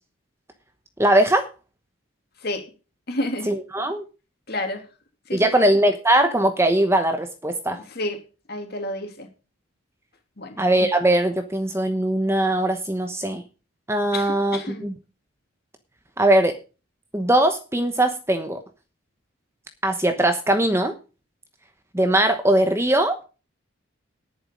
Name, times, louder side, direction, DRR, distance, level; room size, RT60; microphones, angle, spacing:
voice 1, 1.0-1.5 3.5-4.0 5.3-7.8 10.6-13.4 13.9-15.0 16.2-16.6 17.1-18.6 19.8-20.9 21.9-23.2, right 1 dB, 10° right, 7 dB, 1.0 m, -20 dB
voice 2, 3.1-3.5 4.5-4.8 5.3-5.6 7.9-8.2 8.5-9.3 10.4-10.6 14.1-14.9, left 1 dB, 45° left, 4 dB, 2.9 m, -30 dB
10.5 x 9.4 x 5.3 m, 0.33 s
head